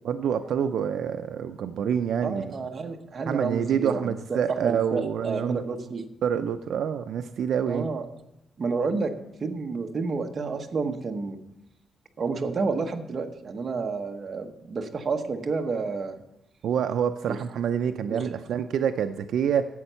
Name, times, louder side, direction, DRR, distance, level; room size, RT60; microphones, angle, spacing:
voice 1, 0.0-2.5 3.3-5.6 6.2-7.9 16.6-19.6, right 8 dB, 70° right, 9 dB, 0.4 m, -27 dB
voice 2, 2.2-4.0 4.5-6.0 7.7-8.0 8.6-9.1 9.4-11.4 12.2-16.1 17.3-17.4 18.1-18.3, right 4 dB, 35° right, 4 dB, 1.0 m, -30 dB
11.0 x 7.8 x 5.5 m, 0.85 s
wide cardioid pair, 170°, 0 cm